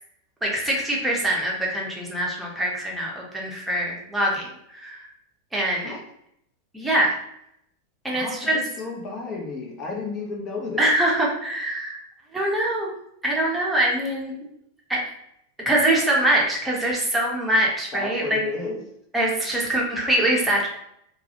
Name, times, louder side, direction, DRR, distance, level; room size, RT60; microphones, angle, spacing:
voice 1, 0.4-5.1 5.5-5.9 6.7-7.2 8.0-8.6 10.8-12.0 12.3-12.9 13.2-14.3 14.9-15.0 15.7-18.4 19.1-20.7, right 1 dB, 5° right, -3 dB, 0.7 m, -23 dB
voice 2, 8.1-10.9 17.9-18.8, left 4 dB, 30° left, 0 dB, 0.5 m, -32 dB
2.3 x 2.0 x 2.7 m, 0.75 s
figure-of-eight pair, 90°, 0 cm